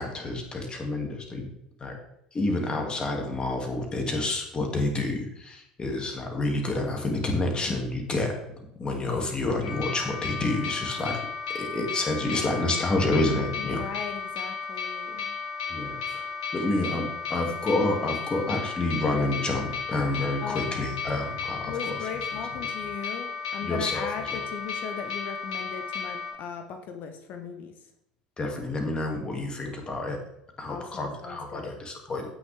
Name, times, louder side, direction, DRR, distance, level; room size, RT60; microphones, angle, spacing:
voice 1, 0.0-1.5 1.8-1.9 2.3-8.3 8.8-11.2 11.5-13.8 15.7-16.3 16.5-22.0 23.6-24.1 24.3-24.4 28.4-30.2 30.6-32.2, left 2 dB, 25° left, 2 dB, 2.6 m, -29 dB
sound 1, 9.6-26.3, left 5 dB, 60° left, 2.5 m, -34 dB
voice 2, 13.5-15.3 20.4-21.0 21.7-27.7 30.7-31.7, left 6 dB, 45° left, 7 dB, 1.2 m, -38 dB
16.0 x 6.3 x 3.6 m, 0.80 s
figure-of-eight pair, 70°, 4 cm